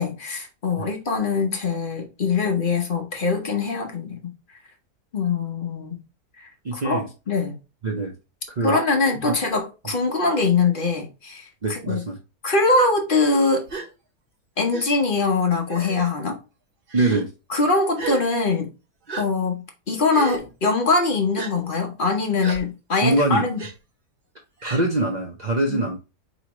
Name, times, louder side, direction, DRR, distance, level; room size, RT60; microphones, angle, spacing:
voice 1, 0.0-4.2 5.1-6.0 6.4-7.0 7.3-7.5 8.6-12.0 12.4-13.6 14.6-16.4 17.5-18.7 19.2-23.6 25.7-25.8, left 3 dB, 40° left, 0.8 m, -23 dB
voice 2, 6.6-7.1 7.8-8.1 8.5-8.8 9.3-9.4 11.6-12.2 16.9-17.3 23.0-23.5 24.6-26.0, right 2 dB, 60° right, 0.4 m, -23 dB
Gasp, 13.7-13.9 14.7-14.8 15.7-16.1 16.9-17.2 18.0-18.2 19.1-19.2 20.1-20.4 21.4-21.5 22.4-22.6 23.6-23.7 24.6-24.8, right 4 dB, 40° right, 1.0 m, -32 dB
4.6 x 3.0 x 2.9 m
omnidirectional pair, 1.7 m